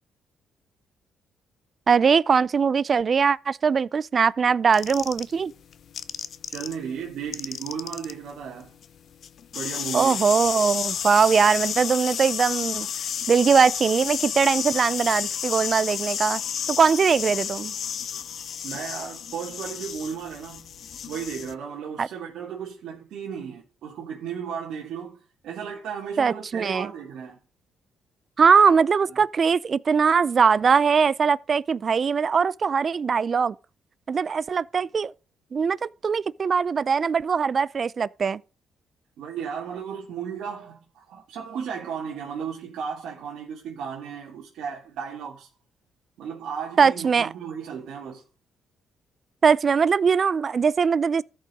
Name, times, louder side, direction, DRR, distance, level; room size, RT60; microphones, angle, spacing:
voice 1, 1.9-5.5 9.9-12.9 13.3-16.4 16.7-17.7 22.0-22.1 26.2-26.9 28.4-33.5 34.1-35.1 35.5-38.4 46.8-47.3 49.4-51.2, right 6 dB, 45° right, 0.5 m, -21 dB
sound 1, 4.7-6.8 7.0-21.5, left 8 dB, 60° left, 0.7 m, -31 dB
voice 2, 6.5-8.7 9.5-10.2 18.6-20.7 21.1-25.2 25.4-27.4 29.1-29.2 39.2-45.5 46.2-48.2, right 7 dB, 80° right, 2.0 m, -35 dB
13.5 x 5.5 x 5.3 m
cardioid pair, 90°, 0 cm